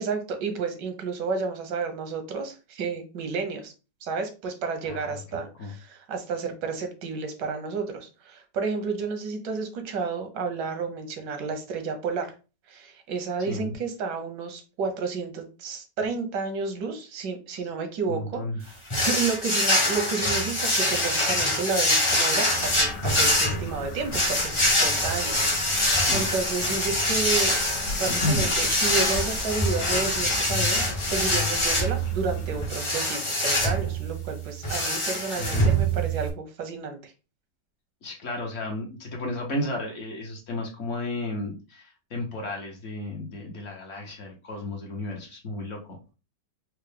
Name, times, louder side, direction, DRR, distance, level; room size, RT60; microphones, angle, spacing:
voice 1, 0.0-3.7 4.0-12.3 12.7-27.6 28.0-37.1, right 4 dB, 90° right, 6 dB, 1.4 m, -31 dB
voice 2, 4.8-5.7 13.5-13.8 17.5-17.7 18.1-18.6 26.0-26.3 28.1-28.5 35.4-35.7 38.0-45.8, left 1 dB, 55° left, 0 dB, 0.9 m, -33 dB
sound 1, 18.9-36.3, left 1 dB, 40° left, 0.4 m, -25 dB
sound 2, 22.6-32.7, left 2 dB, 80° left, 1.6 m, -35 dB
4.4 x 2.0 x 3.2 m, 0.33 s
omnidirectional pair, 1.8 m